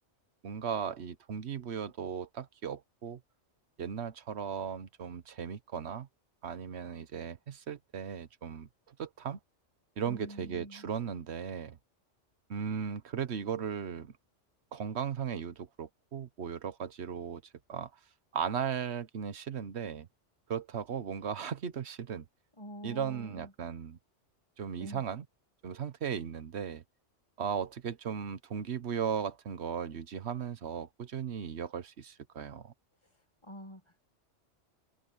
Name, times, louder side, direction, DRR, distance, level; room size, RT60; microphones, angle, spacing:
voice 1, 0.4-3.2 3.8-6.1 6.4-9.4 10.0-11.8 12.5-14.1 14.7-17.4 17.7-17.9 18.3-20.1 20.5-22.2 22.8-24.0 24.6-25.2 25.6-26.8 27.4-32.7, right 7 dB, 65° right, 1.3 m, -37 dB
voice 2, 10.1-10.9 22.6-23.5 24.8-25.0 33.0-33.8, equal, 25° left, 2.0 m, -46 dB
open air
omnidirectional pair, 1.2 m